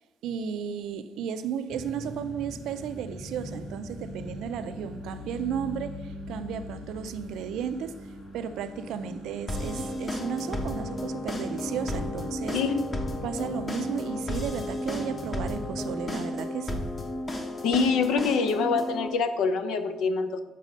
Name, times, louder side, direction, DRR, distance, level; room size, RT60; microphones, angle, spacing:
voice 1, 0.2-8.0 8.3-12.6 13.2-16.8, right 8 dB, 80° right, 0.4 m, -34 dB
sound 1, 1.7-15.9, left 1 dB, 45° left, 1.7 m, -41 dB
sound 2, 9.5-19.1, left 1 dB, 30° left, 0.9 m, -33 dB
voice 2, 12.5-12.9 17.6-20.4, left 5 dB, 85° left, 0.6 m, -25 dB
6.4 x 4.1 x 5.3 m
cardioid pair, 110°, 0 cm